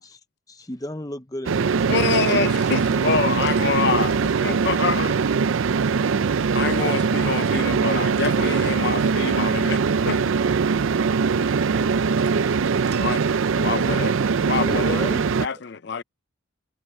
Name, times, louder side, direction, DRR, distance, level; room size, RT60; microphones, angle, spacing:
voice 1, 0.5-3.1 3.8-4.4 11.6-11.8 13.5-14.0 14.7-15.2, left 1 dB, 15° left, 0.7 m, -36 dB
sound 1, 1.5-15.5, right 5 dB, 75° right, 0.5 m, -21 dB
voice 2, 1.9-4.1 4.4-5.1 6.5-9.8 10.1-10.3 13.0-13.2 13.6-14.1 14.5-14.6 15.1-16.0, left 5 dB, 55° left, 0.5 m, -26 dB
voice 3, 11.4-11.5, right 1 dB, 25° right, 1.5 m, -41 dB
sound 2, 12.3-12.4 12.9-13.4, right 8 dB, 50° right, 2.3 m, -47 dB
head